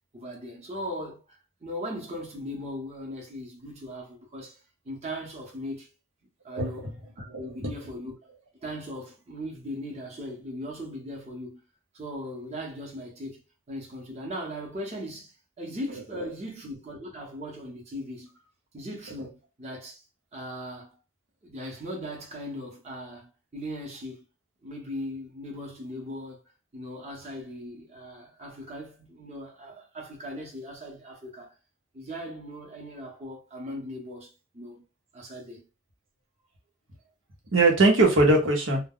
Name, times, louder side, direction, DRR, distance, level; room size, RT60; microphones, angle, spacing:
voice 1, 0.1-4.6 4.8-5.9 6.4-6.9 7.2-8.1 8.6-11.6 11.9-13.4 13.7-18.3 18.7-20.0 20.3-21.0 21.4-24.2 24.6-26.4 26.7-31.5 31.9-34.8 35.1-35.7, equal, 35° right, 0.8 m, -38 dB
voice 2, 6.5-6.9 7.3-7.7 37.5-38.8, right 2 dB, 80° right, 0.9 m, -21 dB
2.2 x 2.1 x 3.5 m
head